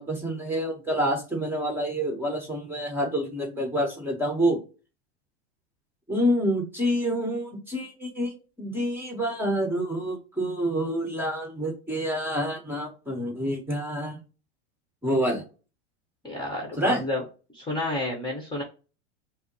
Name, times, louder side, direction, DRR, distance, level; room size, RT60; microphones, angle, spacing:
voice 1, 0.0-4.6 6.1-14.2 15.0-15.4 16.8-17.0, equal, 5° right, 1 dB, 1.4 m, -27 dB
voice 2, 16.2-17.2 17.5-18.6, left 2 dB, 15° left, 0 dB, 1.2 m, -30 dB
5.4 x 2.0 x 4.5 m, 0.33 s
supercardioid pair, 125°, 35 cm